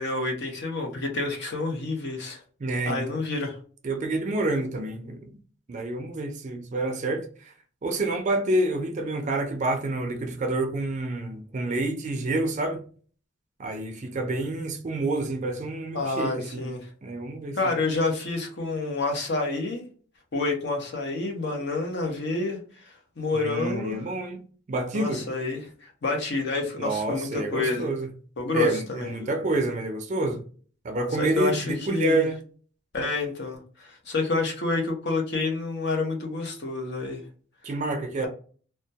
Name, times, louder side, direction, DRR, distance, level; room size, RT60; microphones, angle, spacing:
voice 1, 0.0-2.4 2.9-3.6 15.9-16.8 17.5-19.8 20.3-24.1 24.9-27.9 28.4-29.3 31.2-32.3 32.9-37.2 38.2-38.3, left 3 dB, 55° left, 0.7 m, -29 dB
voice 2, 2.6-3.0 3.8-5.4 5.7-7.5 7.8-12.8 13.6-16.7 17.0-17.7 23.3-25.2 26.8-28.1 28.5-30.4 30.8-32.4 37.6-38.3, right 2 dB, 35° right, 0.4 m, -28 dB
2.2 x 2.1 x 2.7 m
head